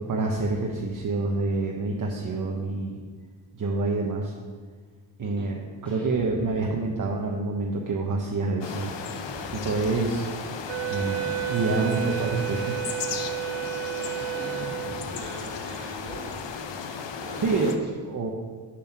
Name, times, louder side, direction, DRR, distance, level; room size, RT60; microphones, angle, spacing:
voice 1, 0.0-3.0 3.5-4.3 5.2-8.9 9.5-10.3 10.9-12.8 16.9-17.0 17.4-18.3, right 3 dB, 45° right, 0 dB, 0.8 m, -27 dB
voice 2, 5.2-5.5 15.1-16.3 17.2-17.7, right 2 dB, 20° right, -3 dB, 1.8 m, -41 dB
sound 1, 5.8-7.1 9.1-10.2 11.7-12.8 14.3-17.0, equal, 5° left, 1.8 m, -45 dB
sound 2, 8.6-17.8, left 6 dB, 75° left, 0.8 m, -35 dB
Wind instrument woodwind instrument, 10.7-15.2, right 14 dB, 70° right, 0.5 m, -31 dB
7.2 x 6.2 x 5.9 m, 1.5 s
wide cardioid pair, 150°, 45 cm